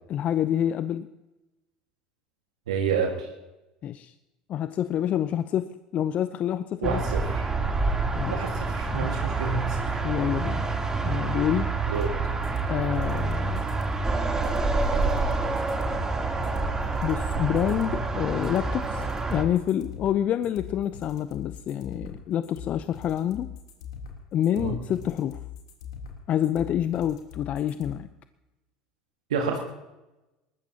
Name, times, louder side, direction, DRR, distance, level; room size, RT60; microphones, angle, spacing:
voice 1, 0.1-1.1 3.8-4.1 4.5-7.0 8.1-8.4 8.9-9.1 10.0-10.7 11.0-11.7 12.7-13.8 17.0-23.5 24.3-25.4 26.3-28.1, left 10 dB, 45° left, 13 dB, 0.6 m, -27 dB
voice 2, 2.7-3.3 6.8-7.5 8.3-10.0 11.9-12.1 24.6-24.7 29.3-29.6, right 5 dB, 75° right, 1 dB, 1.8 m, -29 dB
sound 1, 6.8-19.4, right 3 dB, 20° right, 3.2 m, -27 dB
sound 2, 11.9-27.9, left 7 dB, 70° left, 3.3 m, -41 dB
23.0 x 20.0 x 2.9 m, 1.0 s
hypercardioid pair, 70°, 3 cm